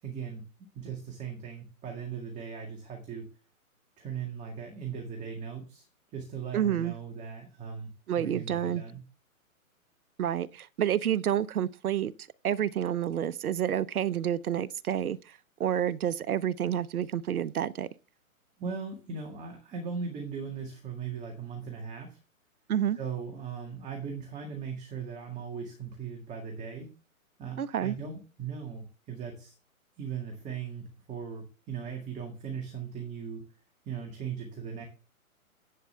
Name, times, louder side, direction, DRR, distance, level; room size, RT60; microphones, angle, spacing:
voice 1, 0.0-3.3 4.0-9.0 18.6-22.2 23.0-26.9 27.4-29.5 30.0-33.4 33.9-34.9, right 6 dB, 15° right, 1.9 m, -38 dB
voice 2, 6.5-6.9 8.1-8.8 10.2-12.1 12.4-17.9 22.7-23.0 27.6-27.9, right 10 dB, 80° right, 0.8 m, -29 dB
11.0 x 8.6 x 3.3 m
hypercardioid pair, 140°, 43 cm